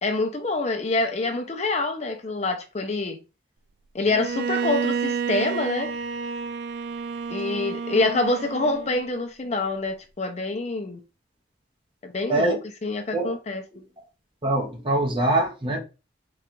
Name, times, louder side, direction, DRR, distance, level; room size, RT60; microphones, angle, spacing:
voice 1, 0.0-3.2 3.9-5.9 7.3-11.0 12.0-13.6, left 2 dB, 35° left, 0.5 m, -26 dB
Bowed string instrument, 4.1-9.1, right 6 dB, 55° right, 0.4 m, -30 dB
voice 2, 14.4-15.8, right 2 dB, 25° right, 0.8 m, -23 dB
3.8 x 2.4 x 4.4 m
head